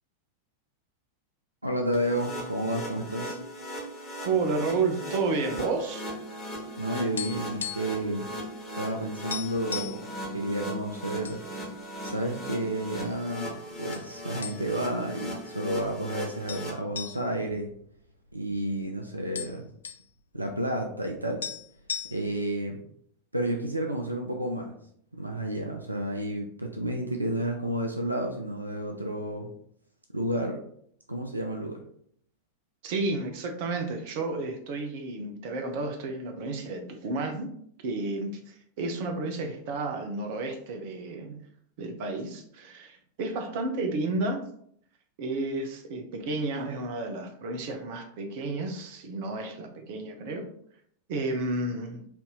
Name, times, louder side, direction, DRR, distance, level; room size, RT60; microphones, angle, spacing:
voice 1, 1.6-3.4 6.8-8.3 8.7-11.4 12.0-17.7 18.3-19.7 20.3-21.4 22.1-22.8 23.3-24.8 25.1-29.5 30.1-30.6 31.1-31.8, right 1 dB, 85° right, 2 dB, 0.4 m, -31 dB
sound 1, 1.9-16.7, equal, 15° left, 1.4 m, -38 dB
voice 2, 4.2-6.1 32.8-37.6 37.8-41.4 41.8-44.5 45.2-50.5 51.1-52.1, right 3 dB, 50° right, 5 dB, 0.7 m, -31 dB
sound 2, 6.6-8.1 8.3-8.5 8.9-9.0 9.3-10.0 10.7-11.4 11.8-11.9 12.6-13.2 13.9-14.1 14.4-14.9 15.3-15.4 16.5-18.5 18.8-18.9 19.1-20.1 21.1-21.2 21.4-22.5, left 7 dB, 70° left, 0.4 m, -37 dB
4.4 x 2.7 x 3.6 m, 0.66 s
figure-of-eight pair, 90°, 0 cm